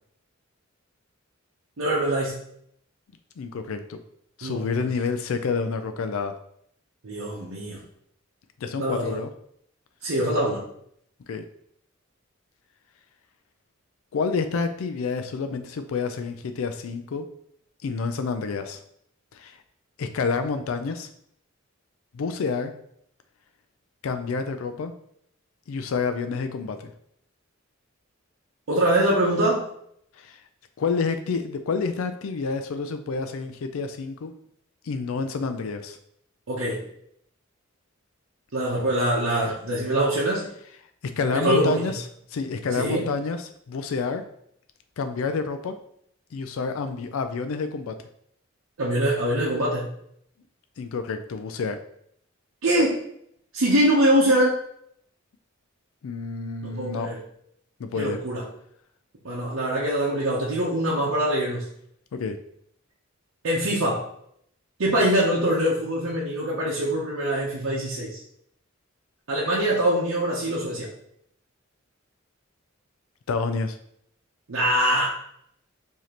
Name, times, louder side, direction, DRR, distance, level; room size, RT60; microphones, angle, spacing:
voice 1, 1.8-2.4 4.4-4.8 7.0-7.8 8.8-9.2 10.0-10.7 28.7-29.7 36.5-36.8 38.5-40.5 41.3-41.8 42.8-43.0 48.8-49.9 52.6-53.0 53.5-54.6 56.6-57.2 57.9-58.4 59.2-61.7 63.4-64.0 64.8-68.2 69.3-70.9 74.5-75.1, right 1 dB, 80° right, -6 dB, 0.8 m, -23 dB
voice 2, 3.4-4.0 4.4-6.4 8.6-9.3 11.3-11.4 14.1-17.3 17.8-18.8 19.3-19.6 20.0-21.1 22.1-22.7 24.0-24.9 25.7-26.9 30.2-30.4 30.8-34.3 34.9-36.0 41.2-42.0 42.3-44.2 45.0-45.7 46.3-47.9 50.8-51.8 56.0-57.1 57.8-58.2 62.1-62.4 73.3-73.8, left 4 dB, 85° left, 8 dB, 0.4 m, -28 dB
4.9 x 2.8 x 2.9 m, 0.69 s
head